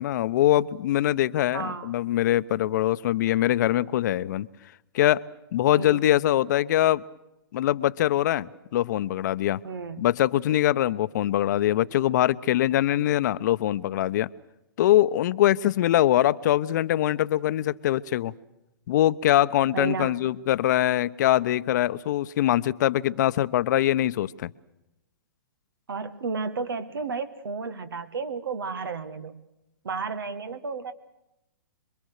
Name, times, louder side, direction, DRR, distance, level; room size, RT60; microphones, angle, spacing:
voice 1, 0.0-4.5 4.9-5.2 5.5-7.0 7.5-9.6 10.0-14.3 14.8-18.3 18.9-24.5, left 13 dB, 55° left, 15 dB, 0.9 m, -23 dB
voice 2, 1.5-1.9 5.7-6.0 9.6-10.1 19.7-20.2 25.9-29.4 29.8-30.9, right 4 dB, 75° right, 12 dB, 1.7 m, -32 dB
27.0 x 23.0 x 6.7 m, 0.89 s
hypercardioid pair, 125°, 12 cm